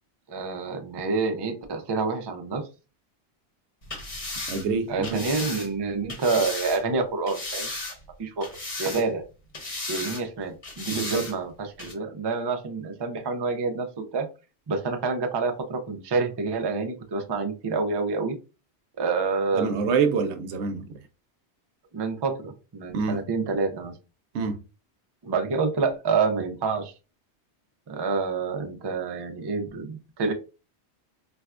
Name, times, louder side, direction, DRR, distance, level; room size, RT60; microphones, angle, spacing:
voice 1, 0.3-2.7 4.9-7.7 8.2-8.5 8.8-9.2 9.9-11.5 11.8-14.3 14.7-18.4 19.0-19.9 21.9-23.9 25.2-26.9 27.9-30.3, right 4 dB, 40° right, 0.4 m, -28 dB
sound 1, 3.8-6.8 7.3-8.1 8.4-9.2 9.5-10.2 10.6-11.3 11.8-11.9, left 2 dB, 35° left, 0.9 m, -35 dB
voice 2, 4.5-5.2 10.9-11.3 19.5-20.9 22.9-23.2 24.3-24.6, right 5 dB, 90° right, 0.9 m, -26 dB
4.2 x 2.2 x 2.4 m
omnidirectional pair, 1.1 m